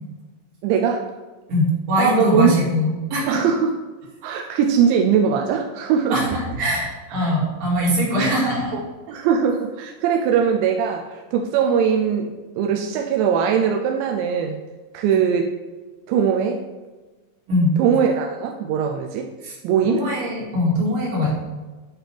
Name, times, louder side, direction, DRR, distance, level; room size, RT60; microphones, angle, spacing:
voice 1, 0.6-1.1 2.0-2.6 3.3-3.7 4.2-6.2 7.1-7.2 8.7-8.8 9.1-14.6 14.9-15.6 16.1-16.6 17.8-19.3 19.6-20.1, right 7 dB, 85° right, 2 dB, 2.8 m, -20 dB
voice 2, 1.5-3.4 6.1-8.7 15.1-15.2 17.5-17.8 19.4-19.6 19.8-21.3, left 1 dB, 55° right, -5 dB, 3.6 m, -22 dB
8.4 x 5.7 x 3.4 m, 1.3 s
omnidirectional pair, 5.1 m